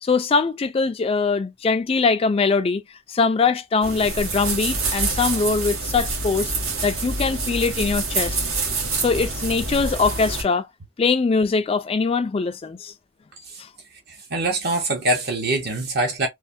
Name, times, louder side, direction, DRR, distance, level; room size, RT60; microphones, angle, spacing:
voice 1, 0.0-2.8 3.1-6.5 6.8-8.4 9.0-10.7 11.0-12.9 13.6-13.7, left 4 dB, 30° left, 0.3 m, -22 dB
sound 1, 3.8-10.4, right 3 dB, 80° right, 1.2 m, -26 dB
voice 2, 14.1-16.3, right 2 dB, 50° right, 0.8 m, -24 dB
3.2 x 2.1 x 2.6 m
head